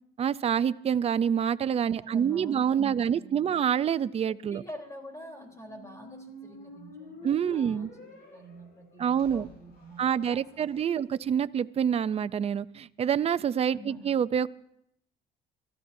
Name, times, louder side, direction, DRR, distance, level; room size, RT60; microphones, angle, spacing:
voice 1, 0.2-4.6 7.2-7.9 9.0-9.5 10.0-14.5, right 8 dB, 35° right, 15 dB, 0.5 m, -27 dB
voice 2, 2.0-3.6 4.3-7.9 8.3-10.8 13.7-14.1, equal, 20° left, 2 dB, 3.6 m, -47 dB
Squeak, 4.9-10.9, left 2 dB, 75° left, 7.5 m, -50 dB
29.5 x 15.0 x 2.7 m, 0.75 s
cardioid pair, 110°, 17 cm